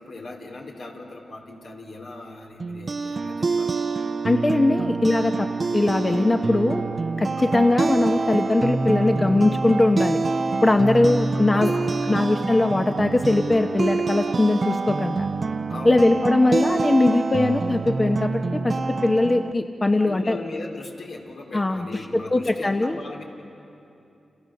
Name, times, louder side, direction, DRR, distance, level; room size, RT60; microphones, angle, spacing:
voice 1, 0.0-3.8 4.8-4.9 7.4-7.6 10.8-12.2 15.7-16.2 20.0-23.2, left 2 dB, 80° left, 0 dB, 3.6 m, -38 dB
sound 1, 2.6-19.5, right 3 dB, 55° right, 0.7 m, -26 dB
voice 2, 4.2-5.5 5.7-6.8 7.2-10.2 10.6-11.7 12.1-15.3 15.8-20.4 21.5-21.9 22.1-23.0, left 2 dB, 30° left, 6 dB, 1.0 m, -20 dB
30.0 x 27.5 x 6.6 m, 2.8 s
cardioid pair, 55°, 0 cm